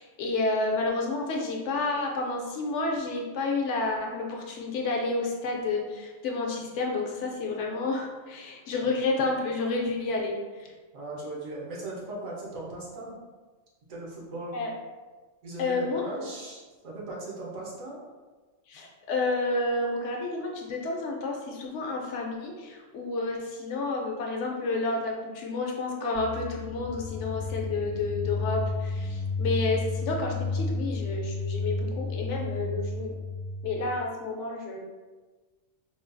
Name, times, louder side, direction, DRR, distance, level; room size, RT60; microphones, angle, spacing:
voice 1, 0.0-10.7 14.5-14.7 15.6-16.3 18.7-33.1 33.6-34.8, left 3 dB, 70° left, 0 dB, 0.8 m, -30 dB
voice 2, 10.9-13.2 13.9-14.7 15.4-18.0, right 2 dB, 80° right, -4 dB, 1.3 m, -38 dB
sound 1, 26.1-33.9, left 3 dB, 55° left, 0.4 m, -32 dB
3.8 x 2.3 x 2.5 m, 1.3 s
omnidirectional pair, 1.4 m